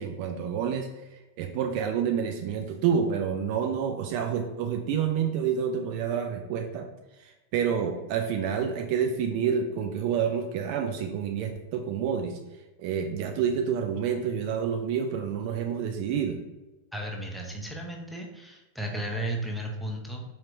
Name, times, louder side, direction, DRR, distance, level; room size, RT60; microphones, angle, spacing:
voice 1, 0.0-6.9 7.1-16.4, right 7 dB, 45° right, 4 dB, 0.3 m, -28 dB
voice 2, 16.9-20.2, right 1 dB, ahead, -1 dB, 0.7 m, -34 dB
4.3 x 2.9 x 2.5 m, 1.1 s
figure-of-eight pair, 90°, 0 cm